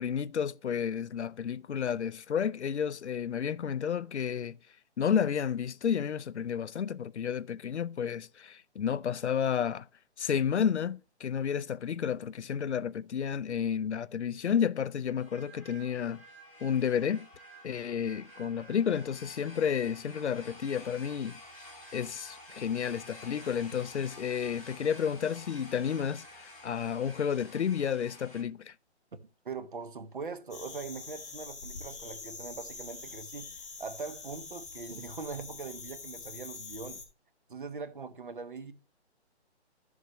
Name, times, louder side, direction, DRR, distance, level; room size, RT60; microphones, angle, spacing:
voice 1, 0.0-4.6 5.0-9.9 10.2-16.2 16.6-17.3 17.6-21.4 21.9-28.7, left 8 dB, 75° left, 0.6 m, -31 dB
sound 1, 15.2-28.4, left 1 dB, ahead, 0.8 m, -51 dB
voice 2, 29.4-33.5 33.8-37.0 37.5-38.7, right 4 dB, 45° right, 1.1 m, -41 dB
sound 2, 30.5-37.0, left 4 dB, 15° left, 1.2 m, -45 dB
12.5 x 7.2 x 3.0 m
hypercardioid pair, 175°, 34 cm